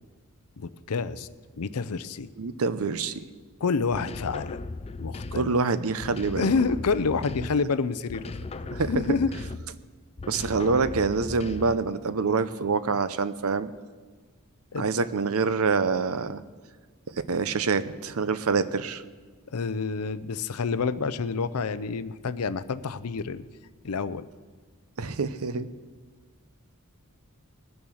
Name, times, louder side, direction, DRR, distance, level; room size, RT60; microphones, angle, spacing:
voice 1, 0.6-1.3 1.6-2.3 3.6-4.6 5.0-5.5 6.4-8.3 8.9-9.3 14.7-14.9 19.5-23.4 23.8-24.2, left 4 dB, 80° left, 15 dB, 0.6 m, -28 dB
voice 2, 2.4-3.2 5.3-6.5 8.7-9.2 10.3-13.7 14.8-16.4 17.1-19.0 25.0-25.7, right 4 dB, 70° right, 14 dB, 0.7 m, -26 dB
sound 1, 3.9-5.6 6.0-7.7 8.1-9.8 10.2-11.9, left 3 dB, 25° left, 0.4 m, -37 dB
20.5 x 7.0 x 6.3 m, 1.4 s
head